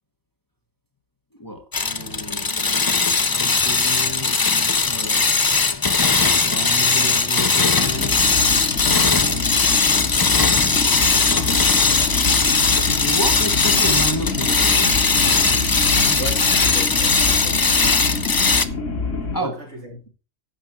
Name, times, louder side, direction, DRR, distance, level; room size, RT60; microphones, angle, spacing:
voice 1, 1.4-2.5 3.3-4.4 4.8-5.2 6.4-8.4 12.8-14.9 18.7-18.9 19.2-19.6, equal, 15° left, 1.5 m, -30 dB
sound 1, 1.7-18.7, left 4 dB, 30° left, 0.4 m, -19 dB
sound 2, 7.9-19.4, left 3 dB, 70° left, 2.8 m, -27 dB
voice 2, 16.0-18.0 19.1-20.1, right 1 dB, 65° right, 3.8 m, -36 dB
11.0 x 8.2 x 4.5 m
omnidirectional pair, 1.3 m